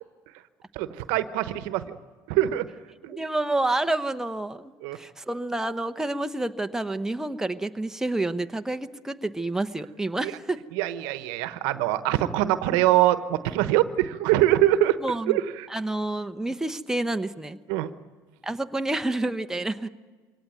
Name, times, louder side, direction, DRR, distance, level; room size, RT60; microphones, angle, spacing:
voice 1, 0.7-2.0 2.3-2.7 3.0-3.2 4.8-5.0 10.2-10.3 10.7-15.0 15.3-15.4 17.7-17.9, right 14 dB, 80° right, 13 dB, 1.1 m, -23 dB
voice 2, 3.1-10.7 15.0-15.4 15.7-17.6 18.4-19.9, right 2 dB, 5° right, 8 dB, 1.0 m, -29 dB
23.0 x 18.0 x 9.4 m, 1.5 s
supercardioid pair, 90°, 8 cm